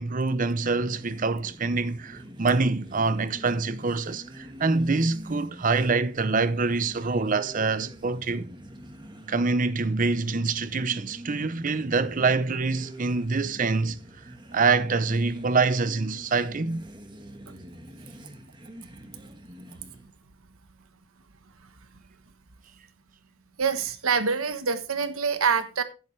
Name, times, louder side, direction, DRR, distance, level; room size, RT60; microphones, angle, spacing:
voice 1, 0.0-8.5 9.3-14.0 14.5-16.8, right 4 dB, 40° right, 0.6 m, -25 dB
sound 1, 0.6-20.1, equal, 20° right, 1.4 m, -45 dB
voice 2, 23.6-25.8, right 5 dB, 90° right, 1.2 m, -25 dB
10.5 x 10.5 x 3.3 m
head